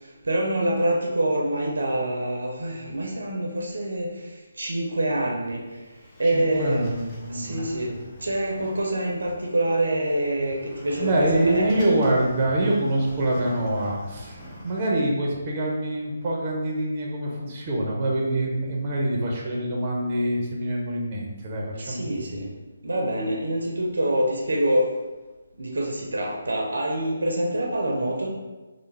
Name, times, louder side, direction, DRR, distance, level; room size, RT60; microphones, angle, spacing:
voice 1, 0.2-5.6 6.2-6.8 7.3-7.9 8.2-11.8 21.7-22.5 22.8-24.9 25.6-28.3, right 1 dB, 75° right, 0 dB, 0.5 m, -26 dB
Sliding door, 5.4-14.8, left 1 dB, 25° left, 0.8 m, -45 dB
voice 2, 6.2-8.0 11.0-14.4 14.6-22.0 22.3-22.4, right 1 dB, 30° right, -2 dB, 0.7 m, -25 dB
3.3 x 2.1 x 3.2 m, 1.2 s
figure-of-eight pair, 150°, 0 cm